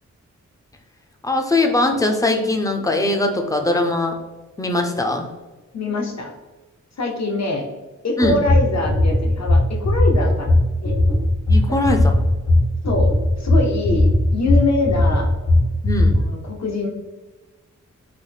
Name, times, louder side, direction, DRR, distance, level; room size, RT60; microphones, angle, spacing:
voice 1, 1.2-4.1 4.6-5.3 8.2-8.4 11.5-12.1 15.8-16.2, left 2 dB, 10° left, 3 dB, 0.4 m, -20 dB
voice 2, 5.7-6.3 7.0-7.7 8.0-11.0 11.7-11.8 12.9-15.3 16.1-16.9, left 2 dB, 60° left, 1 dB, 0.8 m, -24 dB
sound 1, 8.2-16.2, left 1 dB, 90° left, 0.9 m, -17 dB
3.9 x 2.1 x 3.3 m, 1.2 s
wide cardioid pair, 75°, 31 cm